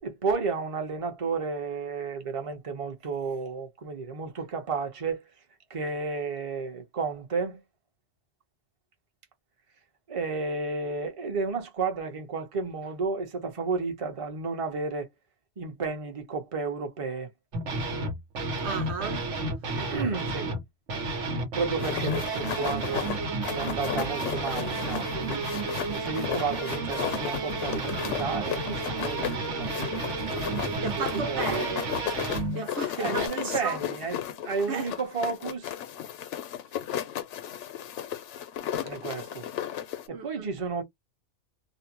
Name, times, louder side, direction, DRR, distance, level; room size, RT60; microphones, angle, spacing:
voice 1, 0.0-5.2 5.7-7.6 10.1-15.1 15.6-17.3 19.7-20.5 21.5-23.1 23.5-25.5 25.9-30.2 30.6-31.8 33.0-35.7 38.8-39.5 40.1-40.8, right 4 dB, 35° right, 0.7 m, -32 dB
sound 1, 17.5-20.6 20.9-32.7 33.1-33.3, right 2 dB, 90° right, 1.2 m, -32 dB
voice 2, 18.6-19.3 30.8-31.9 32.5-33.8 34.7-34.9 40.1-40.5, right 6 dB, 70° right, 0.9 m, -33 dB
sound 2, 21.8-40.1, left 10 dB, 80° left, 0.9 m, -35 dB
2.6 x 2.0 x 2.8 m
omnidirectional pair, 1.2 m